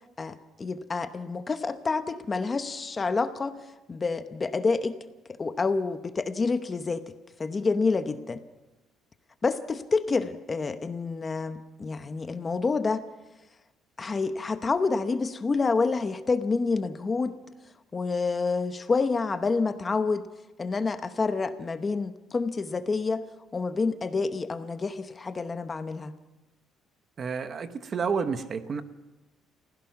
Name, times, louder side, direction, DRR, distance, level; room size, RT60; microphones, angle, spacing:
voice 1, 0.2-3.6 3.9-5.0 5.3-7.0 7.4-8.4 9.4-13.0 14.0-17.4 17.9-20.2 20.6-23.2 23.5-26.1, left 4 dB, 20° left, 10 dB, 0.8 m, -28 dB
voice 2, 27.2-28.8, right 5 dB, 30° right, 10 dB, 1.0 m, -30 dB
28.5 x 16.0 x 5.8 m, 1.1 s
cardioid pair, 160°, 0 cm